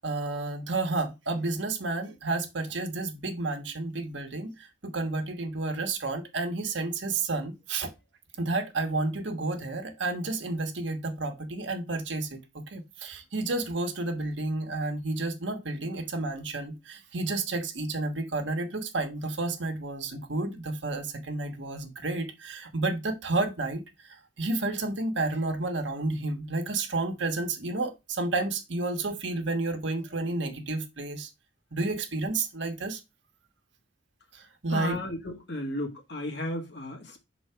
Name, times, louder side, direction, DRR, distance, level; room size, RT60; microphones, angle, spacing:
voice 1, 0.0-4.5 4.8-7.9 8.4-23.8 24.4-31.3 31.7-33.0 34.6-35.0, right 2 dB, 70° right, 1.3 m, -31 dB
voice 2, 34.7-37.2, left 1 dB, 60° left, 1.8 m, -34 dB
6.3 x 4.0 x 4.5 m
head